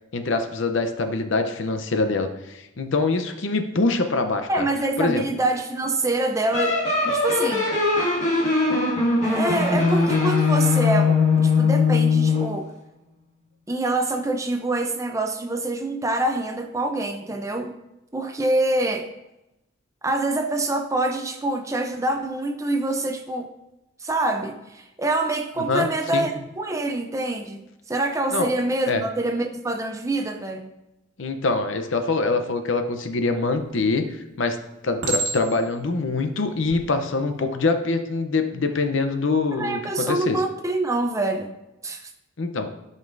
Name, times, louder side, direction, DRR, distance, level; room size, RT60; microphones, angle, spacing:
voice 1, 0.1-4.6 5.0-5.2 25.6-25.9 26.1-26.3 28.3-28.5 28.9-29.0 31.2-34.1 34.4-34.6 34.8-40.4 42.4-42.7, left 3 dB, 65° left, 7 dB, 0.7 m, -24 dB
voice 2, 4.5-7.7 9.2-12.7 13.7-17.8 18.1-19.1 20.0-23.5 24.0-30.7 39.5-41.5 41.8-42.1, right 2 dB, 15° right, 5 dB, 0.5 m, -25 dB
sound 1, 6.5-12.6, left 4 dB, 35° left, 2.0 m, -20 dB
Chink clink, 33.5-34.0 35.0-35.8 36.5-36.8, right 3 dB, 60° right, 1.5 m, -29 dB
12.5 x 5.3 x 2.6 m, 0.92 s
head